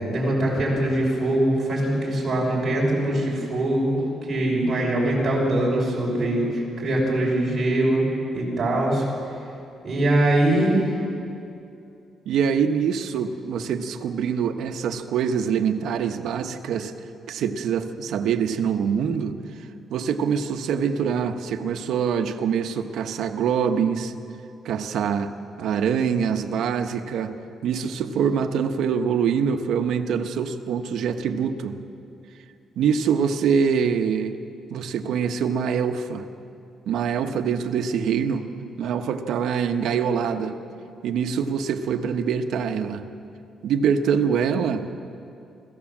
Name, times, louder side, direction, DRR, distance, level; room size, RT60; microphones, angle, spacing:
voice 1, 0.0-6.5 6.8-8.0 8.3-9.0 9.8-11.0, right 1 dB, 20° right, -4 dB, 6.0 m, -22 dB
voice 2, 12.3-16.9 17.3-19.4 19.9-24.1 24.6-25.3 25.6-27.3 27.6-31.8 32.8-34.4 34.7-36.3 36.9-38.5 38.8-40.6 41.0-43.0 43.6-44.9, right 7 dB, 70° right, 6 dB, 1.1 m, -24 dB
25.0 x 15.5 x 7.4 m, 2.7 s
cardioid pair, 180°, 0 cm